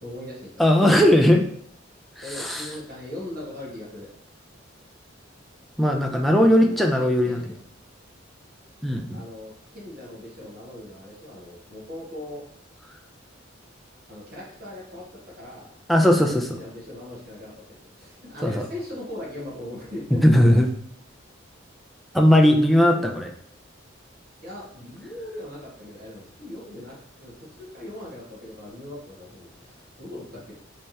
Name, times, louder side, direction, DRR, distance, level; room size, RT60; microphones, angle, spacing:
voice 1, 0.0-0.6 2.2-4.1 6.5-6.9 7.2-7.5 9.1-12.4 14.1-15.7 16.6-20.2 24.4-26.9 27.2-30.5, left 1 dB, 50° right, -6 dB, 1.4 m, -39 dB
voice 2, 0.6-1.4 2.3-2.7 5.8-7.4 8.8-9.2 15.9-16.6 18.4-18.7 20.1-20.7 22.1-23.3, equal, ahead, 1 dB, 0.3 m, -18 dB
3.4 x 3.2 x 2.8 m, 0.62 s
head